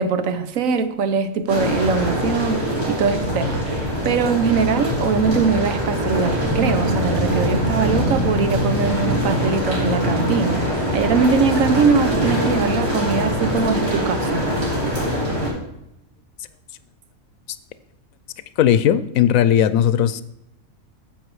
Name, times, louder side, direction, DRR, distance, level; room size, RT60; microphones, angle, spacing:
voice 1, 0.0-3.6 4.0-14.5, right 5 dB, 75° right, 1.2 m, -22 dB
sound 1, 1.5-15.5, equal, 50° right, 3.8 m, -22 dB
voice 2, 18.6-20.2, left 10 dB, 85° left, 1.0 m, -17 dB
10.0 x 7.6 x 4.7 m
omnidirectional pair, 1.4 m